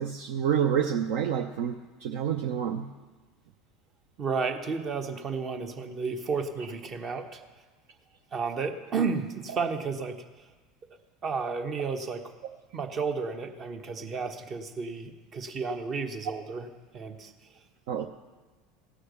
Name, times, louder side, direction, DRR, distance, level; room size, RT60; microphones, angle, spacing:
voice 1, 0.0-2.9 17.9-18.1, right 8 dB, 60° right, 5 dB, 0.6 m, -28 dB
voice 2, 4.2-7.4 8.3-10.2 11.2-12.2 12.7-16.7 16.9-17.3, right 5 dB, 35° right, 6 dB, 1.1 m, -32 dB
16.5 x 6.4 x 6.6 m, 1.3 s
figure-of-eight pair, 70°, 0 cm